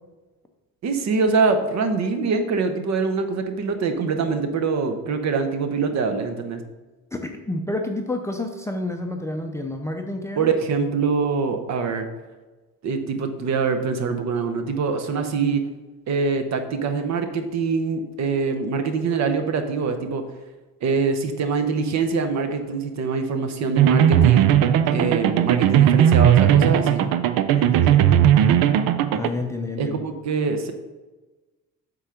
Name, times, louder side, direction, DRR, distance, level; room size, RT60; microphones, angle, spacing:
voice 1, 0.8-6.6 10.4-12.1 12.8-15.6 16.1-20.2 20.8-24.5 24.9-27.1 29.8-30.7, right 4 dB, 55° right, 7 dB, 0.9 m, -24 dB
voice 2, 7.1-10.5 24.9-25.1 27.5-28.1 29.1-30.0, left 2 dB, 10° left, 3 dB, 0.5 m, -29 dB
sound 1, 23.8-29.3, right 10 dB, 85° right, 0.6 m, -17 dB
8.0 x 3.8 x 5.8 m, 1.2 s
cardioid pair, 150°, 34 cm